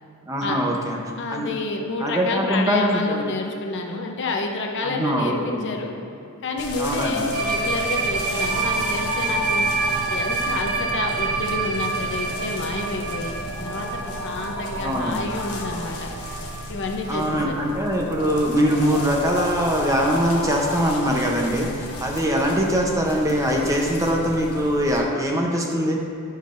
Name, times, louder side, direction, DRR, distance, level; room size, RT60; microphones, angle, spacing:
voice 1, 0.3-1.0 1.3-1.5 2.0-3.3 4.8-5.7 6.8-7.3 14.8-15.2 17.1-26.0, equal, 15° right, 0 dB, 0.6 m, -22 dB
voice 2, 1.2-5.9 6.4-9.7 10.1-16.1 16.7-17.6, left 3 dB, 55° left, 2 dB, 0.6 m, -29 dB
sound 1, 6.6-25.0, left 1 dB, 85° left, 0.9 m, -33 dB
sound 2, 7.3-19.2 19.5-19.7 20.0-20.2 20.5-20.6 20.9-21.0 22.1-22.2, right 4 dB, 85° right, 0.7 m, -28 dB
9.4 x 5.5 x 2.5 m, 2.7 s
head